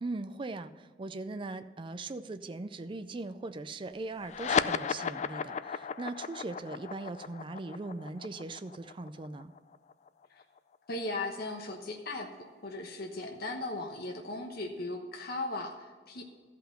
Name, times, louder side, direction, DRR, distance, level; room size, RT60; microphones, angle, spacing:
voice 1, 0.0-9.5, right 2 dB, 30° right, 11 dB, 0.4 m, -40 dB
sound 1, 4.2-11.1, left 6 dB, 40° left, 0.3 m, -35 dB
voice 2, 10.9-16.2, left 2 dB, 55° left, 1 dB, 1.0 m, -37 dB
13.5 x 5.7 x 5.7 m, 1.5 s
head